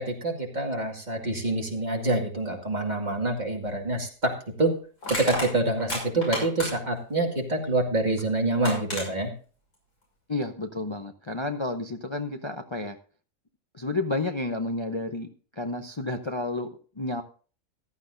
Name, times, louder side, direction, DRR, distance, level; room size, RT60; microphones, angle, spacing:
voice 1, 0.0-4.3 4.6-4.7 5.1-9.3, right 2 dB, 30° right, 1 dB, 2.3 m, -26 dB
Crushing, 3.6-3.8 5.0-7.0 8.2-8.3 8.6-9.1, left 1 dB, 85° left, 6.5 m, -31 dB
voice 2, 10.3-13.0 13.7-16.7 17.0-17.2, left 2 dB, 25° left, 5 dB, 0.7 m, -31 dB
15.0 x 12.0 x 2.6 m, 0.39 s
omnidirectional pair, 1.4 m